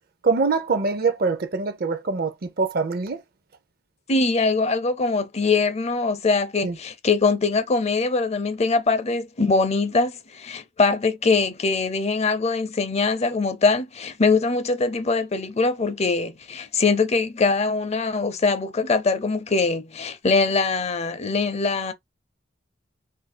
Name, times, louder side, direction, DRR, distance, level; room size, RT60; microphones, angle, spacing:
voice 1, 0.2-3.2 6.6-6.8, right 4 dB, 50° right, 0.5 m, -24 dB
voice 2, 4.1-21.9, left 4 dB, 35° left, 0.5 m, -22 dB
2.7 x 2.6 x 4.1 m
head